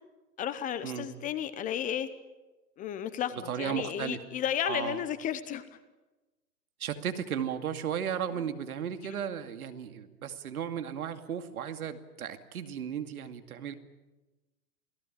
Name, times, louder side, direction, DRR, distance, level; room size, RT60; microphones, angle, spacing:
voice 1, 0.4-2.1 2.8-5.6, left 10 dB, 15° left, 13 dB, 0.9 m, -33 dB
voice 2, 3.5-4.2 4.6-5.0 6.8-13.7, right 8 dB, 65° right, 8 dB, 2.5 m, -35 dB
28.0 x 17.5 x 8.9 m, 1.1 s
hypercardioid pair, 125°, 48 cm